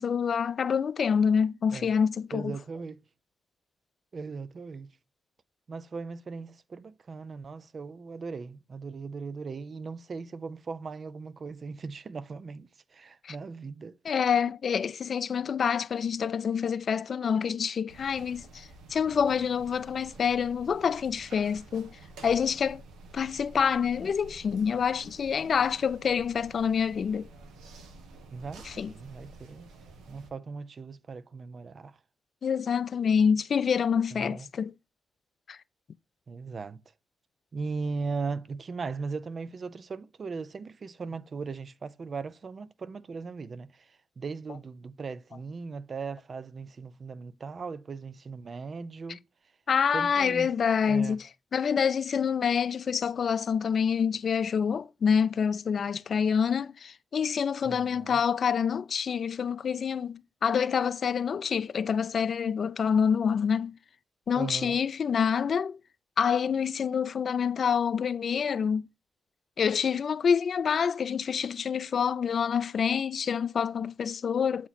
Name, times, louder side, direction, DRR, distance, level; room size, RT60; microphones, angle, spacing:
voice 1, 0.0-2.6 13.2-13.4 14.0-22.0 22.2-22.8 23.1-27.3 28.6-28.9 32.4-34.7 35.5-35.6 49.7-63.7 64.3-65.8 66.2-68.8 69.6-74.7, left 7 dB, 60° left, 0.3 m, -27 dB
voice 2, 2.3-3.0 4.1-4.9 5.7-14.1 28.3-29.7 30.1-32.0 34.1-34.5 36.3-36.8 37.5-49.2 49.9-50.5 50.8-51.2 57.6-58.2 64.4-64.8, right 4 dB, 50° right, 0.5 m, -38 dB
sound 1, 17.9-30.3, right 3 dB, 85° right, 1.0 m, -50 dB
8.3 x 3.0 x 4.1 m
supercardioid pair, 55°, 0 cm